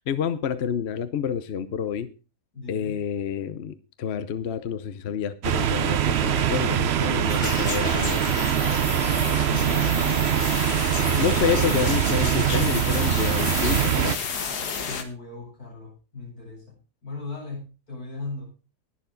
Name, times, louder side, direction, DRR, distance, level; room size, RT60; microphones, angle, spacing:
voice 1, 0.1-2.1 2.7-8.4 11.2-14.2, left 8 dB, 50° left, 13 dB, 0.9 m, -28 dB
voice 2, 2.5-3.0 9.4-10.2 14.8-18.6, left 3 dB, 75° left, -4 dB, 8.0 m, -38 dB
sound 1, 5.4-14.2, right 10 dB, 55° right, 0.8 m, -23 dB
sound 2, 7.3-15.0, left 6 dB, 90° left, 2.0 m, -31 dB
20.5 x 6.9 x 3.9 m, 0.33 s
omnidirectional pair, 1.6 m